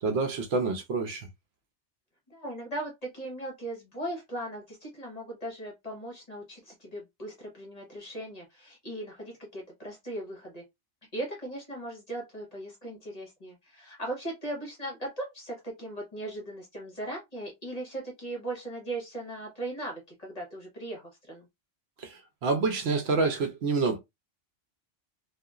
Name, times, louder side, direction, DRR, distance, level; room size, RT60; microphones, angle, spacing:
voice 1, 0.0-1.3 22.0-24.0, right 4 dB, 65° right, 0.8 m, -28 dB
voice 2, 2.3-10.6 11.1-21.5, right 1 dB, 35° left, 1.0 m, -38 dB
2.8 x 2.4 x 2.3 m
omnidirectional pair, 1.2 m